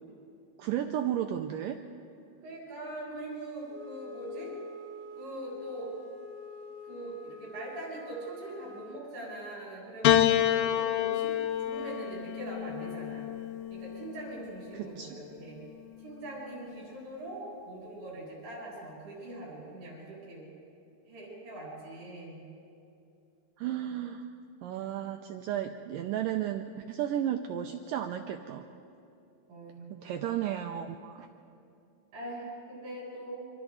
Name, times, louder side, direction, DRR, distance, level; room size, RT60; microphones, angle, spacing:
voice 1, 0.6-1.8 14.7-15.2 23.6-24.3 24.6-28.7 30.0-31.3, right 10 dB, 90° right, 5 dB, 1.9 m, -33 dB
voice 2, 2.4-4.5 5.1-5.9 6.8-11.3 11.6-13.3 13.7-15.6 16.0-20.5 21.1-22.4 29.5-30.2 32.1-33.4, right 1 dB, 70° right, -5 dB, 9.1 m, -42 dB
Wind instrument woodwind instrument, 3.7-9.0, left 3 dB, 35° right, 2.5 m, -46 dB
Piano, 10.0-14.5 15.6-16.3, left 11 dB, 75° left, 2.2 m, -29 dB
28.5 x 25.0 x 4.0 m, 2.7 s
omnidirectional pair, 4.7 m